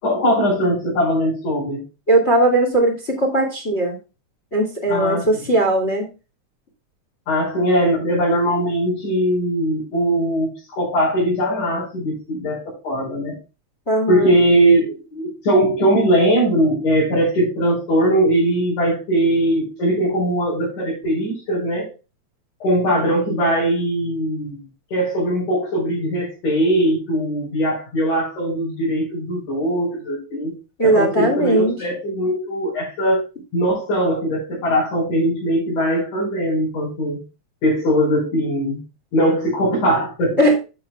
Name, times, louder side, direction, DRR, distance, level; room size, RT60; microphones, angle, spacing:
voice 1, 0.0-1.8 4.9-5.3 7.3-10.5 10.8-13.4 14.1-21.9 22.6-24.6 24.9-30.5 30.8-33.2 33.5-37.2 37.6-38.8 39.1-40.4, right 1 dB, 90° left, -7 dB, 6.2 m, -20 dB
voice 2, 2.1-4.0 4.5-6.1 13.9-14.3 30.8-31.8 40.4-40.5, right 1 dB, 25° left, 2 dB, 2.1 m, -18 dB
11.5 x 7.7 x 2.2 m, 0.29 s
omnidirectional pair, 3.4 m